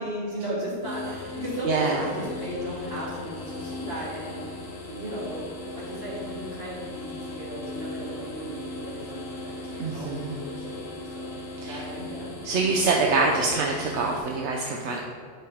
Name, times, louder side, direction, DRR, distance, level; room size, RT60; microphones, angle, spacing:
voice 1, 0.0-12.4, equal, 60° right, -7 dB, 2.7 m, -36 dB
sound 1, 0.8-14.2, left 2 dB, 70° left, 1.4 m, -38 dB
voice 2, 1.6-2.0 9.8-10.4 11.6-11.8 12.4-15.0, right 3 dB, 80° right, 0 dB, 1.0 m, -25 dB
10.5 x 5.7 x 3.5 m, 2.1 s
omnidirectional pair, 1.2 m